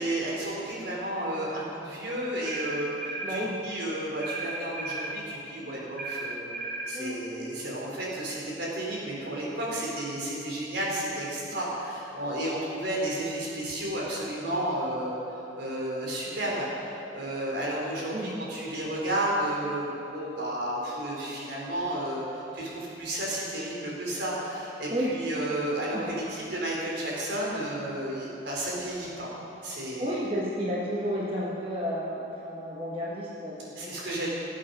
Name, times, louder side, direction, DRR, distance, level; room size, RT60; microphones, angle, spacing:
voice 1, 0.0-6.5 6.9-15.2 15.6-29.3 29.6-30.2 33.8-34.3, right 1 dB, 65° right, -4 dB, 3.8 m, -32 dB
sound 1, 2.4-3.4 4.2-5.2 6.0-7.0, right 3 dB, 50° right, 0.9 m, -35 dB
voice 2, 3.2-3.6 6.9-7.2 18.1-18.3 24.9-25.2 25.9-26.1 30.0-34.2, equal, 30° right, -5 dB, 1.4 m, -32 dB
19.0 x 8.6 x 5.5 m, 2.9 s
head